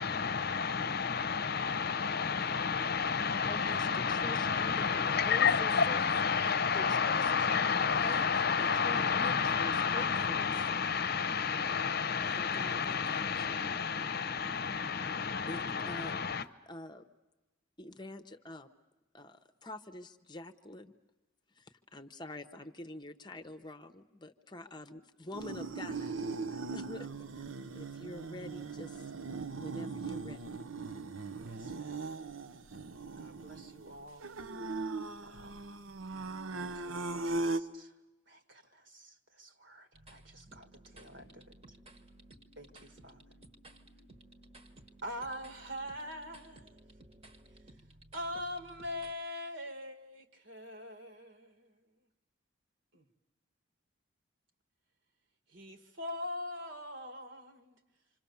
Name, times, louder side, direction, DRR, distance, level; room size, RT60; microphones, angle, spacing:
voice 1, 0.0-16.5, left 6 dB, 50° left, 0.8 m, -30 dB
voice 2, 3.4-6.1 6.7-10.5 12.4-13.7 15.5-16.2 16.7-17.0 17.8-18.7 19.1-20.9 21.6-26.1 26.5-27.3 27.7-29.0 29.6-30.6, left 1 dB, 20° left, 0.9 m, -46 dB
sound 1, 25.3-37.6, right 3 dB, 80° right, 0.8 m, -39 dB
voice 3, 31.5-32.1 33.2-34.2 35.2-35.6 36.1-37.9 38.3-41.6 42.6-43.2 45.0-46.8 48.1-51.7 52.9-53.1 55.5-57.8, left 1 dB, 60° right, 2.0 m, -44 dB
sound 2, 39.9-49.1, right 1 dB, 30° right, 1.4 m, -57 dB
27.0 x 26.5 x 7.1 m
head